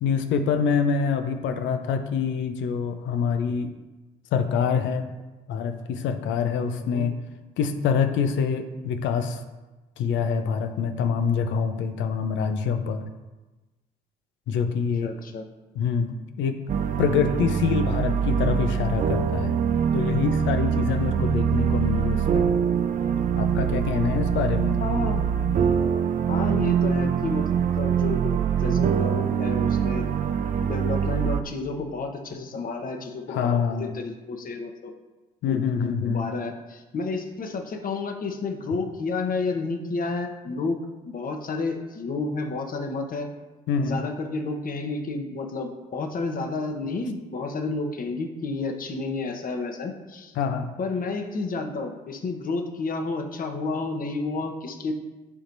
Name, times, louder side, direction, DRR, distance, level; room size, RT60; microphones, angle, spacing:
voice 1, 0.0-3.7 4.3-5.0 5.5-7.1 7.6-9.4 10.0-13.0 14.5-15.1 15.7-16.6 17.0-19.6 19.9-22.5 23.4-24.8 33.3-33.9 35.4-36.3 43.7-44.0 50.4-50.7, left 6 dB, 65° left, 8 dB, 0.8 m, -25 dB
voice 2, 6.8-7.1 15.0-15.5 24.8-25.3 26.3-27.5 27.8-30.1 30.6-34.9 35.4-43.3 43.8-50.3 50.8-54.9, left 3 dB, 45° left, 4 dB, 1.2 m, -31 dB
sound 1, 16.7-31.4, right 8 dB, 40° right, 0.5 m, -24 dB
11.0 x 4.4 x 2.7 m, 1.1 s
hypercardioid pair, 55°, 21 cm